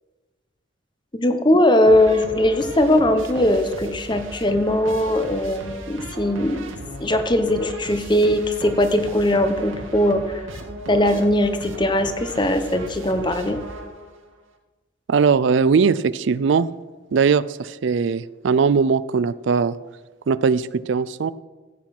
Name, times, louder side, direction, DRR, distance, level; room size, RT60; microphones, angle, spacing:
voice 1, 1.2-6.7 7.0-10.4 10.9-13.6, left 1 dB, 25° left, 8 dB, 0.9 m, -20 dB
sound 1, 1.9-14.3, right 1 dB, 90° right, 1.9 m, -37 dB
voice 2, 15.1-16.7 17.1-19.8 20.3-21.3, right 5 dB, 70° right, 17 dB, 0.4 m, -19 dB
14.5 x 8.4 x 5.9 m, 1.2 s
head